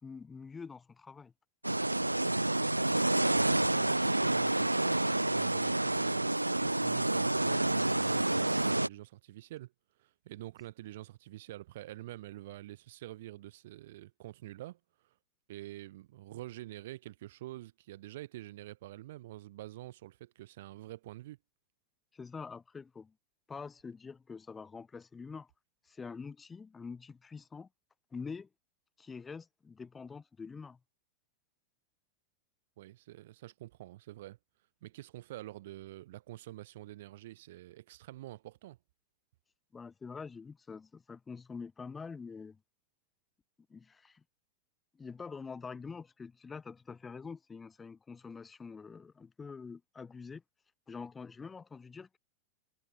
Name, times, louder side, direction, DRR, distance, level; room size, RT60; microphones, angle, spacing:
voice 1, 0.0-1.3 1.6-1.7 22.1-23.1 23.5-25.5 25.9-27.7 28.1-28.5 29.0-30.8 39.7-42.6 43.7-44.2 45.0-50.4 50.9-52.2, left 5 dB, 15° left, 4.0 m, -45 dB
sound 1, 1.6-8.9, right 1 dB, 85° right, 0.7 m, -29 dB
voice 2, 3.2-9.7 10.0-15.1 15.5-21.4 32.8-34.4 34.8-38.8, right 15 dB, 55° right, 4.4 m, -47 dB
figure-of-eight pair, 90°, 0 cm